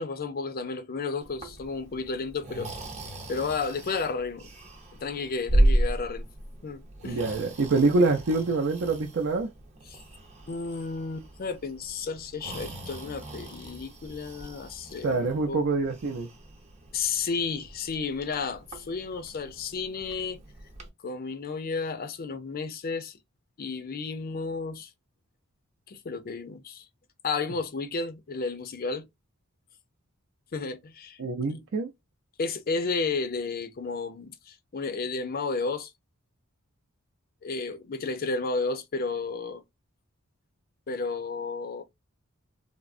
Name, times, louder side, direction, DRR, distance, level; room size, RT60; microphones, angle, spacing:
voice 1, 0.0-2.7 3.3-4.5 4.9-6.3 6.6-7.2 9.9-10.0 10.5-15.7 16.9-20.4 21.0-23.2 23.6-24.9 25.9-26.9 27.2-29.1 30.5-31.2 31.5-31.6 32.4-35.9 37.4-39.6 40.9-41.8, left 4 dB, 45° left, 0.5 m, -32 dB
Breathing, 1.2-20.9, right 1 dB, 35° right, 0.7 m, -34 dB
voice 2, 7.0-9.5 15.0-16.3 31.2-31.9, right 3 dB, 65° right, 0.5 m, -25 dB
3.4 x 2.0 x 2.4 m
head